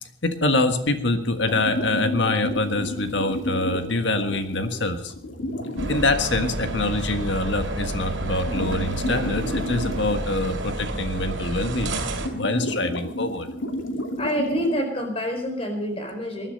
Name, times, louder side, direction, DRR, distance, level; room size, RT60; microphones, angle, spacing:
voice 1, 0.2-5.1 5.9-12.1 12.3-13.5, left 2 dB, 70° left, 8 dB, 1.5 m, -25 dB
sound 1, 1.4-5.9 8.0-8.1 8.3-10.6 10.8-10.9 11.3-11.4 12.0-14.7, left 1 dB, 85° left, 2.4 m, -31 dB
sound 2, 5.8-12.3, right 2 dB, 80° right, 3.0 m, -30 dB
voice 2, 14.2-16.5, equal, 30° left, 4 dB, 4.3 m, -27 dB
20.0 x 11.5 x 5.4 m, 0.69 s
head